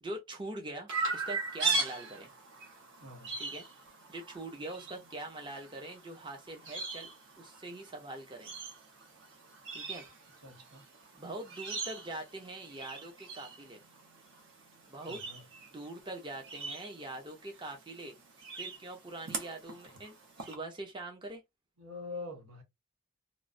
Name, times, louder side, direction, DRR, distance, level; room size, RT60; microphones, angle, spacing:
voice 1, 0.0-2.3 3.4-3.7 4.1-7.1 7.4-8.5 9.7-10.0 11.1-13.8 14.9-15.2 15.7-18.2 18.6-21.4, right 2 dB, 20° right, 0.5 m, -43 dB
Chirp tweet, 0.9-20.5, right 3 dB, 55° right, 0.9 m, -40 dB
voice 2, 3.0-3.4 10.4-10.8 15.1-15.4 21.8-22.6, left 3 dB, 85° right, 1.1 m, -44 dB
3.0 x 2.0 x 2.4 m
head